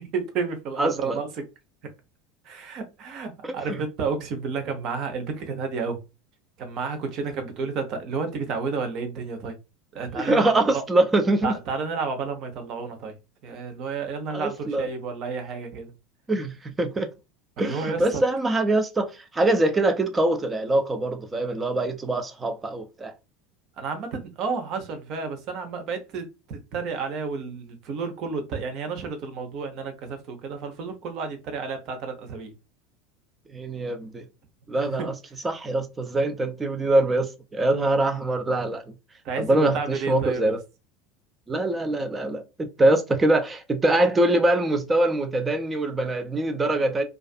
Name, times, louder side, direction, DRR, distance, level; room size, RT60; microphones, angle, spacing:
voice 1, 0.0-1.4 2.4-6.0 6.6-9.6 9.9-10.8 11.4-13.1 13.4-15.9 17.6-18.2 23.8-32.5 39.2-40.6, right 5 dB, 50° right, 0.8 m, -31 dB
voice 2, 0.8-1.2 3.7-3.8 10.1-11.5 14.3-14.9 16.3-17.1 17.6-23.1 33.5-34.3 34.7-35.1 35.4-38.8 39.4-40.6 41.5-47.0, right 2 dB, 20° right, 0.6 m, -23 dB
2.4 x 2.4 x 2.3 m
hypercardioid pair, 80°, 0 cm